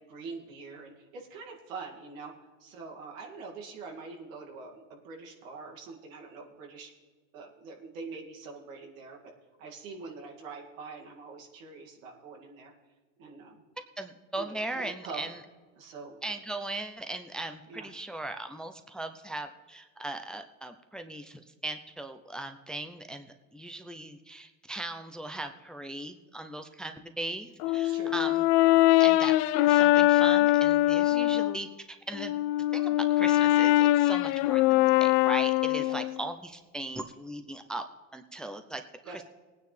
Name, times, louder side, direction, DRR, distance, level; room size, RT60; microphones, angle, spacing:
voice 1, 0.0-2.3 2.6-6.9 7.3-9.2 9.6-12.7 13.2-13.6 14.3-15.3 15.8-16.2 17.7-17.9 27.7-28.2 28.6-28.8 35.8-36.0 39.0-39.2, right 4 dB, 85° right, 0 dB, 2.5 m, -44 dB
voice 2, 14.0-15.4 16.2-28.5 29.0-29.4 29.7-32.3 32.7-37.8 38.1-39.2, right 2 dB, ahead, 7 dB, 0.5 m, -38 dB
Brass instrument, 27.6-31.6 32.1-36.2, left 16 dB, 65° left, 0.5 m, -23 dB
19.0 x 9.4 x 3.4 m, 1.4 s
supercardioid pair, 110°, 39 cm